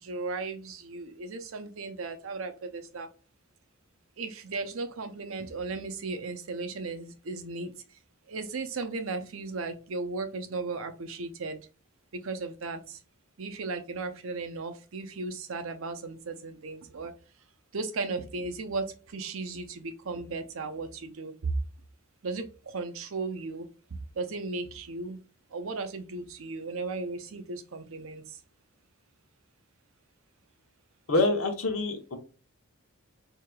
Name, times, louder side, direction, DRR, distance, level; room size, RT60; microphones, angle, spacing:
voice 1, 0.0-3.1 4.2-7.8 8.3-11.6 12.1-13.0 13.4-17.1 17.7-21.5 22.2-25.2 25.5-28.4, right 3 dB, 70° right, 0.6 m, -36 dB
voice 2, 31.1-32.2, left 2 dB, 80° left, 0.9 m, -26 dB
4.7 x 2.8 x 2.2 m
head